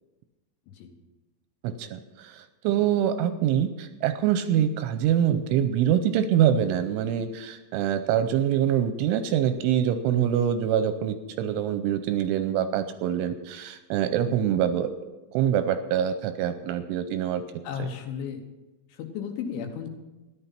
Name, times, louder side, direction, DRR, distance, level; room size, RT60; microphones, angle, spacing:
voice 1, 1.6-14.9 15.3-17.4, right 9 dB, 85° right, 10 dB, 2.9 m, -25 dB
voice 2, 17.6-18.4 18.9-19.9, left 7 dB, 75° left, 5 dB, 3.3 m, -34 dB
14.0 x 11.0 x 5.8 m, 1.1 s
omnidirectional pair, 5.9 m